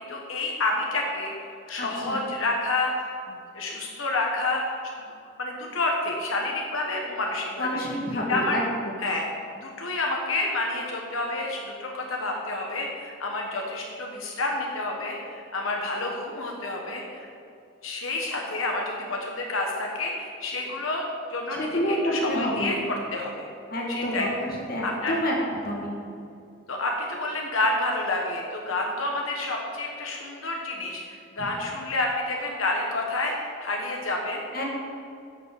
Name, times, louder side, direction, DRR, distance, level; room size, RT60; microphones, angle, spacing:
voice 1, 0.0-1.3 1.7-2.9 3.3-4.6 5.4-7.8 8.3-8.6 9.0-9.3 9.6-17.3 17.8-21.0 21.3-23.5 23.9-24.3 24.8-25.1 26.7-34.4, left 2 dB, 85° left, 0 dB, 1.4 m, -29 dB
voice 2, 1.8-2.2 7.6-8.6 21.6-22.8 23.7-24.3 24.7-25.3 25.6-26.0 34.5-34.6, equal, 45° left, -2 dB, 2.1 m, -28 dB
11.0 x 6.8 x 7.0 m, 2.6 s
head